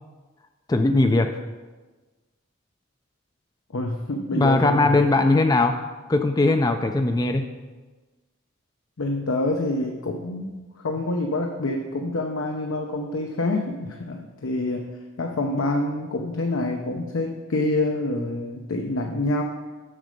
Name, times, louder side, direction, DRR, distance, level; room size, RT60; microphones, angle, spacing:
voice 1, 0.7-1.3 4.3-5.8 6.1-7.5, left 2 dB, 20° left, 6 dB, 0.3 m, -20 dB
voice 2, 3.7-4.9 9.0-14.9 15.2-19.4, left 2 dB, 75° left, 2 dB, 0.7 m, -27 dB
6.6 x 6.6 x 5.1 m, 1.3 s
head